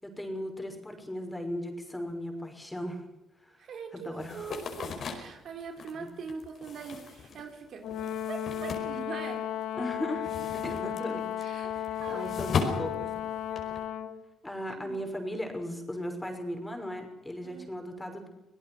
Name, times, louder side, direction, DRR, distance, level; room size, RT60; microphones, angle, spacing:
voice 1, 0.0-3.0 3.4-3.6 3.9-4.5 6.0-6.1 9.7-10.3 10.5-13.1 14.4-18.3, equal, 10° left, 4 dB, 6.0 m, -37 dB
voice 2, 3.6-9.4 11.4-11.7 12.0-12.5 12.8-13.3 14.7-15.0 17.4-17.7, right 6 dB, 65° right, 5 dB, 4.0 m, -43 dB
sound 1, 4.2-9.6 9.9-13.8, left 5 dB, 60° left, 5.2 m, -37 dB
Brass instrument, 7.8-14.2, left 10 dB, 80° left, 1.9 m, -34 dB
26.0 x 17.5 x 6.3 m, 0.99 s
cardioid pair, 90°, 0 cm